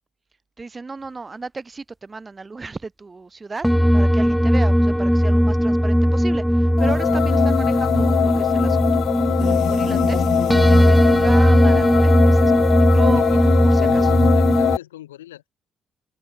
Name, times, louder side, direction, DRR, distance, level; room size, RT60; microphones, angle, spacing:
voice 1, 0.6-14.1, right 3 dB, 30° right, 3.9 m, -34 dB
sound 1, 3.6-14.8, equal, ahead, 0.4 m, -17 dB
sound 2, 6.8-14.8, left 12 dB, 65° left, 1.4 m, -23 dB
voice 2, 13.1-15.5, left 14 dB, 90° left, 6.5 m, -39 dB
hypercardioid pair, 50°, 0 cm